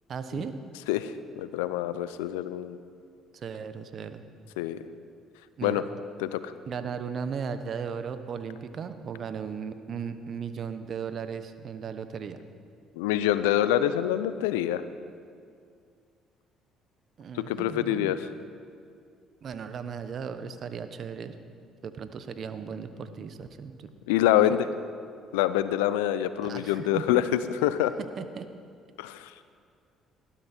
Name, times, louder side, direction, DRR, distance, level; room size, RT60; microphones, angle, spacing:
voice 1, 0.1-0.5 3.3-4.3 5.6-5.8 6.7-12.4 17.2-18.1 19.4-21.3 21.8-23.9 24.5-24.6 26.4-27.2 28.2-28.5, right 6 dB, 55° right, 10 dB, 1.1 m, -36 dB
voice 2, 0.9-2.8 4.6-4.8 5.6-5.8 6.2-6.5 13.0-14.8 17.3-18.2 24.1-24.7 25.3-27.9 29.0-29.3, left 12 dB, 85° left, 13 dB, 0.6 m, -26 dB
20.0 x 13.0 x 4.5 m, 2.3 s
hypercardioid pair, 60°, 0 cm